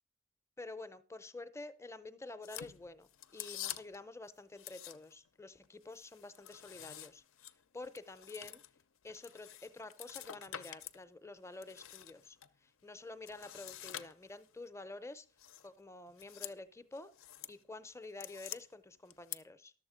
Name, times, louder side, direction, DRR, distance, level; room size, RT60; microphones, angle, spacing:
voice 1, 0.6-8.6 9.0-15.3 15.6-17.1 17.5-19.7, left 2 dB, 15° left, 12 dB, 0.5 m, -49 dB
sound 1, 2.4-4.1 4.6-5.3 5.6-11.0 11.4-12.5 13.2-14.5 15.4-15.7 16.1-16.6 16.9-17.6 17.9-18.6 19.1-19.4, left 11 dB, 70° left, 0.5 m, -48 dB
11.5 x 7.2 x 4.9 m, 0.37 s
head